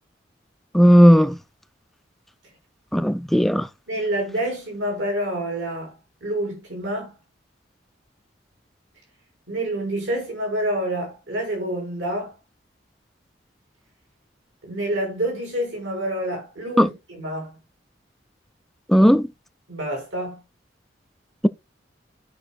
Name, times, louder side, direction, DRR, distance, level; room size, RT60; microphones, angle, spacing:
voice 1, 0.7-1.4 2.9-3.7 16.8-16.9 18.9-19.2, equal, ahead, 0.3 m, -14 dB
voice 2, 3.9-5.9 6.2-7.1 9.5-12.3 14.6-17.6 19.7-20.4, right 1 dB, 75° right, 5.8 m, -27 dB
16.0 x 5.5 x 2.3 m
head